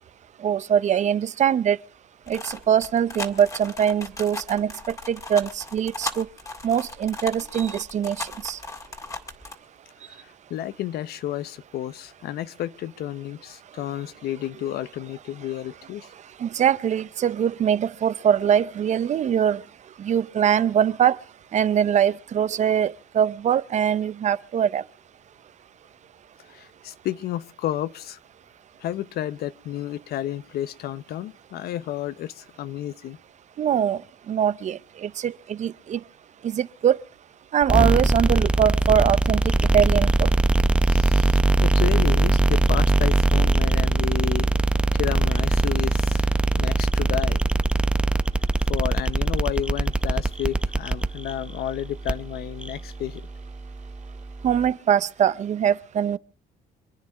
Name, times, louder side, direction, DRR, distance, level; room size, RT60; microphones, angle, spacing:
voice 1, 0.4-1.8 2.3-6.3 6.6-8.6 16.4-19.6 20.0-21.2 21.5-24.8 33.6-34.0 34.3-36.0 36.4-37.0 37.5-40.3 54.4-56.2, right 9 dB, 45° right, 0.7 m, -22 dB
sound 1, 2.3-9.6, left 2 dB, 20° left, 2.0 m, -36 dB
voice 2, 10.1-16.1 26.5-28.2 28.8-33.2 40.8-44.5 44.9-47.4 48.7-53.2, left 12 dB, 70° left, 0.8 m, -31 dB
sound 2, 37.6-54.7, right 2 dB, 5° right, 0.7 m, -22 dB
27.0 x 9.7 x 4.9 m
cardioid pair, 110°, 17 cm